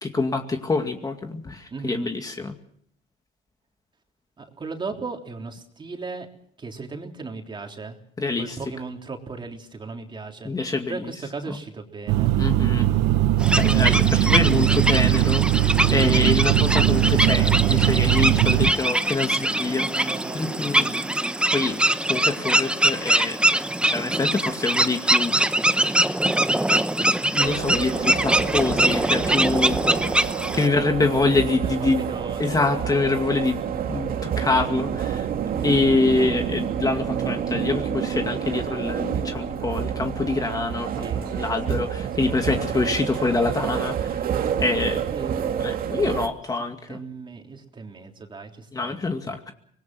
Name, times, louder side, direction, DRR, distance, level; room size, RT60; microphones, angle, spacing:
voice 1, 0.0-2.5 8.2-8.6 10.4-11.0 12.4-12.9 13.6-20.1 20.3-20.9 21.5-21.8 22.1-23.4 23.9-25.4 27.3-29.8 30.5-32.0 32.4-33.6 33.9-35.3 35.6-44.2 44.6-45.0 45.6-47.0 48.7-49.5, left 3 dB, 20° left, 5 dB, 2.3 m, -25 dB
voice 2, 1.7-2.2 4.4-6.3 6.6-8.0 8.4-10.5 10.9-12.4 19.3-21.1 31.4-33.0 35.6-35.9 41.0-41.4 41.7-41.9 42.3-42.8 43.2-43.4 44.9-46.0 46.9-49.0, right 4 dB, 30° right, 3 dB, 3.5 m, -37 dB
sound 1, 12.1-18.7, right 13 dB, 85° right, 1.0 m, -20 dB
sound 2, 13.4-30.7, right 1 dB, 5° right, 1.0 m, -23 dB
sound 3, 27.4-46.3, right 8 dB, 60° right, 2.2 m, -28 dB
25.0 x 20.0 x 6.2 m, 0.67 s
cardioid pair, 110°, 17 cm